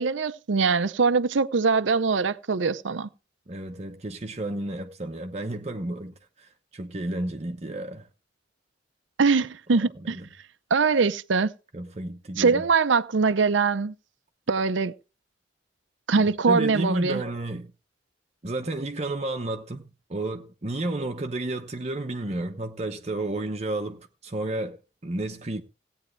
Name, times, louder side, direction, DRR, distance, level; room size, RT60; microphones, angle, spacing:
voice 1, 0.0-3.1 9.2-10.2 10.7-11.5 12.4-13.9 14.5-14.9 16.1-17.2, right 4 dB, 75° right, 0.6 m, -22 dB
voice 2, 3.5-8.1 9.7-9.8 10.1-10.3 11.7-12.6 16.2-17.7 18.4-19.8 20.1-25.6, right 2 dB, 35° right, 0.9 m, -32 dB
17.5 x 8.8 x 3.2 m
head